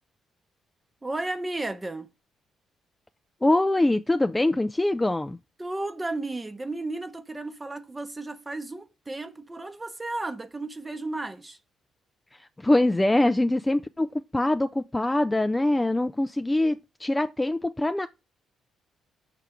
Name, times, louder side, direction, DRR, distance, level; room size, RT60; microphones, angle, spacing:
voice 1, 1.0-2.1 5.6-11.6, right 2 dB, 20° right, 0.8 m, -33 dB
voice 2, 3.4-5.4 12.4-18.1, left 1 dB, 15° left, 0.3 m, -24 dB
5.7 x 3.4 x 5.0 m
cardioid pair, 90°, 0 cm